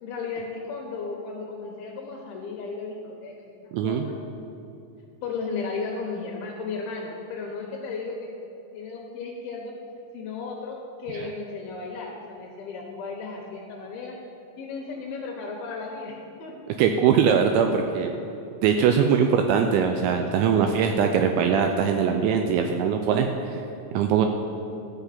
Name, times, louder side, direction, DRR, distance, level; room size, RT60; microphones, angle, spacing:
voice 1, 0.0-3.6 3.8-4.2 5.2-8.3 8.7-9.8 10.1-14.2 14.6-16.6, left 4 dB, 85° left, 0 dB, 2.2 m, -35 dB
voice 2, 3.7-4.0 16.8-18.1 18.6-23.6 23.9-24.3, right 7 dB, 90° right, 5 dB, 2.6 m, -21 dB
13.5 x 5.8 x 8.4 m, 2.8 s
omnidirectional pair, 5.9 m